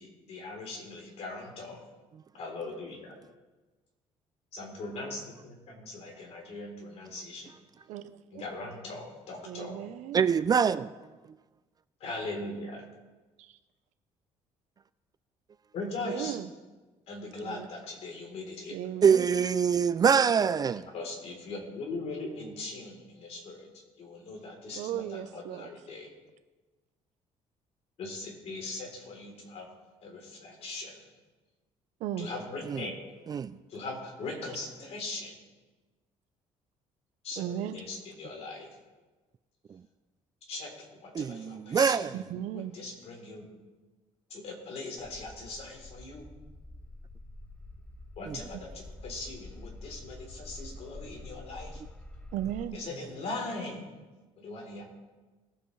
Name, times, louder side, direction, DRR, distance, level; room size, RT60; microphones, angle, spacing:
voice 1, 0.0-1.8 2.3-3.1 4.5-7.5 8.3-9.9 12.0-12.8 15.7-16.4 17.1-18.8 20.9-23.7 24.0-26.1 28.0-29.7 30.0-31.1 32.2-33.0 33.7-35.4 37.2-38.7 40.5-40.7 41.0-42.1 42.5-43.5 44.3-46.2 48.2-51.8 52.7-53.9 54.4-54.8, left 2 dB, 60° left, 3.6 m, -40 dB
voice 2, 7.9-8.4 9.4-10.2 13.4-13.5 16.1-16.5 17.4-17.7 18.7-19.3 24.7-25.7 32.0-32.3 37.4-37.8 42.1-42.7 52.3-52.8, right 11 dB, 85° right, 0.8 m, -36 dB
voice 3, 10.1-10.9 19.0-20.9 32.7-32.8 33.3-33.5 41.2-42.1 48.3-48.4, right 6 dB, 30° right, 0.3 m, -24 dB
sound 1, 45.0-52.7, left 2 dB, 10° left, 0.6 m, -47 dB
20.5 x 7.9 x 3.3 m
cardioid pair, 115°, 12 cm